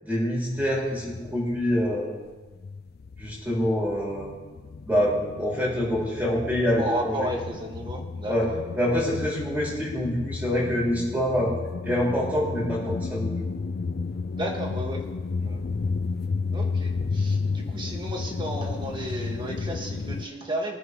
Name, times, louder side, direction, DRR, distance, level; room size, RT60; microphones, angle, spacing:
voice 1, 0.0-2.1 3.2-4.3 4.9-7.2 8.3-8.5 8.8-11.5 11.8-13.3, equal, 10° right, -6 dB, 5.4 m, -26 dB
sound 1, 0.6-2.2 2.5-20.3, left 4 dB, 55° left, 0.4 m, -32 dB
voice 2, 6.8-8.6 14.3-15.0 15.4-15.6 16.5-20.8, right 1 dB, 25° right, 1 dB, 1.9 m, -33 dB
23.5 x 9.6 x 3.2 m, 1.3 s
head